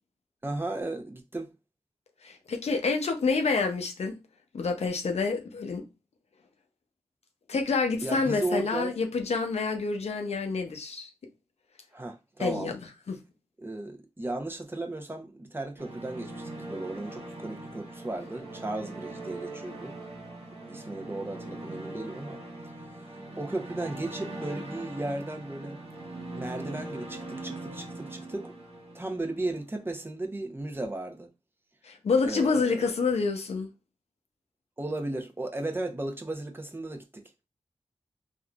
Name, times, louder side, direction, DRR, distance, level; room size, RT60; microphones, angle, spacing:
voice 1, 0.4-1.5 8.0-9.0 11.9-12.7 13.6-19.9 20.7-22.4 23.4-25.8 26.3-28.5 28.9-31.3 32.2-32.9 34.8-37.2, right 2 dB, 20° right, 0.6 m, -35 dB
voice 2, 2.2-4.1 4.5-5.8 7.5-11.1 12.4-13.2 31.8-33.7, left 4 dB, 80° left, 0.6 m, -28 dB
sound 1, 15.8-29.9, right 2 dB, 75° right, 1.1 m, -41 dB
3.5 x 2.4 x 2.3 m
cardioid pair, 55°, 11 cm